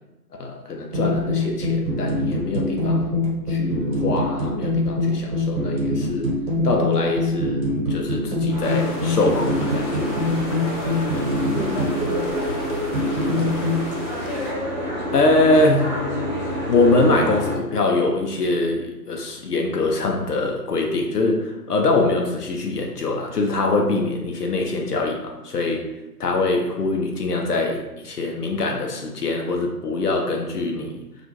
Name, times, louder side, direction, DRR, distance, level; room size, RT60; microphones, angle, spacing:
voice 1, 0.4-6.3 6.6-7.6 7.9-10.1 15.1-15.9 16.7-25.9 26.2-31.0, left 2 dB, 70° left, 1 dB, 0.6 m, -23 dB
sound 1, 0.9-13.8, left 1 dB, 60° right, 1.0 m, -24 dB
Boat Water vehicle, 8.5-17.6, equal, 30° right, 0.5 m, -28 dB
sound 2, 8.6-14.5, left 1 dB, 45° left, 0.8 m, -40 dB
voice 2, 10.6-11.2 11.5-13.7, left 1 dB, 15° left, -15 dB, 0.7 m, -34 dB
2.4 x 2.0 x 2.8 m, 0.99 s
figure-of-eight pair, 145°, 49 cm